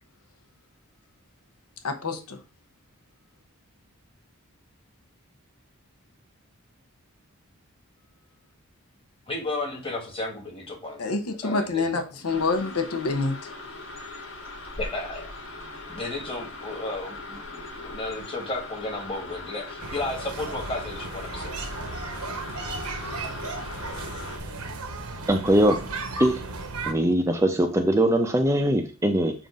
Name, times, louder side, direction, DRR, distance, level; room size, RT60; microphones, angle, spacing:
voice 1, 1.8-2.4 11.0-13.7, left 3 dB, 80° left, 6 dB, 0.9 m, -27 dB
voice 2, 9.3-11.1 11.4-11.9 14.8-15.3 15.9-21.5, left 2 dB, 25° left, 1 dB, 1.5 m, -33 dB
sound 1, 12.3-24.4, left 2 dB, 60° left, 1.4 m, -40 dB
sound 2, 19.8-26.9, right 3 dB, 85° right, 1.2 m, -35 dB
voice 3, 25.3-25.8 26.2-26.4 26.9-29.3, right 1 dB, 10° right, 5 dB, 0.5 m, -21 dB
7.4 x 2.6 x 5.1 m, 0.33 s
head